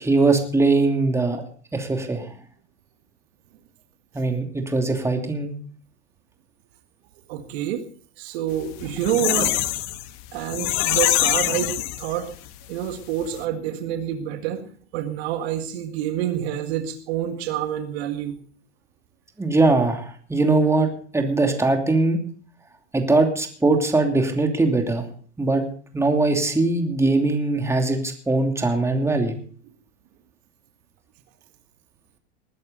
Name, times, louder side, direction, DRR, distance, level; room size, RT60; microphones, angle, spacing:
voice 1, 0.0-1.4 1.7-2.3 4.1-5.5 19.4-22.2 22.9-25.1 25.4-25.6 25.9-29.4, right 3 dB, 10° right, 4 dB, 2.8 m, -21 dB
voice 2, 7.3-7.8 8.2-9.6 10.3-12.3 12.7-18.4, right 10 dB, 60° right, 7 dB, 1.9 m, -27 dB
sound 1, 8.6-12.5 12.9-13.0 13.2-13.4, left 15 dB, 50° left, 1.3 m, -24 dB
20.0 x 11.0 x 3.9 m, 0.44 s
hypercardioid pair, 95°, 35 cm